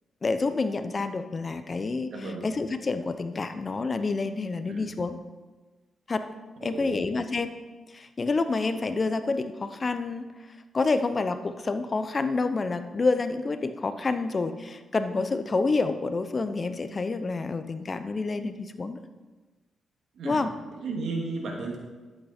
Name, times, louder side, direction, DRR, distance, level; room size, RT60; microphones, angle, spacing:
voice 1, 0.2-5.2 6.1-6.3 6.6-7.6 7.9-10.3 10.7-19.0 20.2-20.5, left 3 dB, 40° left, 10 dB, 0.8 m, -28 dB
voice 2, 2.1-2.4 4.7-4.9 6.6-7.1 20.2-20.4 20.8-21.8, right 3 dB, 75° right, 0 dB, 2.4 m, -34 dB
12.0 x 8.2 x 4.4 m, 1.3 s
cardioid pair, 70°, 0 cm